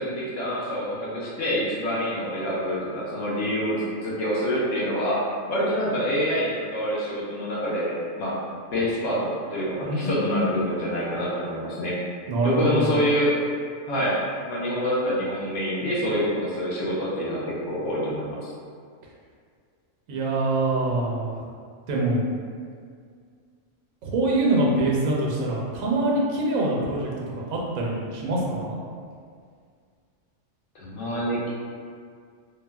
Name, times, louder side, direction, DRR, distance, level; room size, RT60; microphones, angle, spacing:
voice 1, 0.0-5.2 5.5-8.3 8.7-12.0 12.4-13.3 13.9-14.2 14.4-18.5 30.7-31.5, equal, 70° left, -6 dB, 1.0 m, -26 dB
voice 2, 9.8-10.4 12.3-13.0 20.1-21.4 21.9-22.3 24.0-28.8, right 2 dB, 85° right, -3 dB, 1.0 m, -24 dB
3.4 x 2.0 x 2.2 m, 2.1 s
omnidirectional pair, 1.4 m